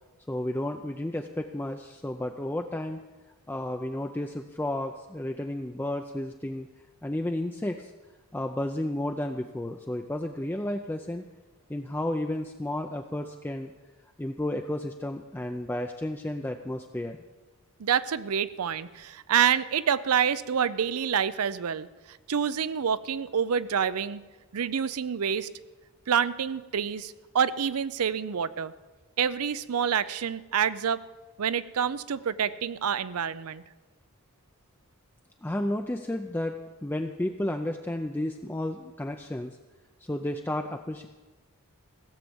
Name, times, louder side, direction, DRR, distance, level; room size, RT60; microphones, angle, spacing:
voice 1, 0.3-3.0 3.5-6.7 7.0-7.9 8.3-11.2 11.7-13.7 14.2-17.2 35.4-39.6 40.0-41.1, left 1 dB, 10° left, 4 dB, 0.4 m, -32 dB
voice 2, 17.8-24.2 24.5-25.5 26.1-28.7 29.2-31.0 31.4-33.6, right 7 dB, 75° right, 16 dB, 0.5 m, -27 dB
16.5 x 7.4 x 7.0 m, 1.2 s
head